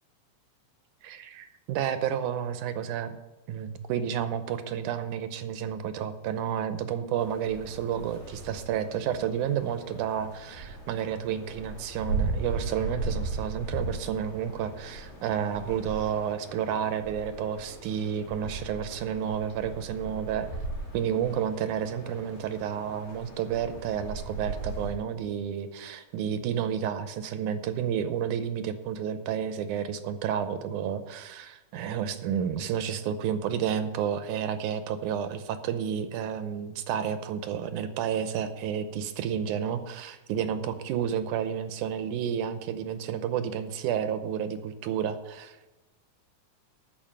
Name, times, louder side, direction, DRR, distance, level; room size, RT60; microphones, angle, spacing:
voice 1, 1.0-3.2 3.5-20.5 20.9-45.6, right 8 dB, 85° right, 10 dB, 2.2 m, -31 dB
sound 1, 7.2-24.9, right 3 dB, 85° left, 4.5 m, -38 dB
12.5 x 5.0 x 8.8 m, 1.1 s
omnidirectional pair, 3.6 m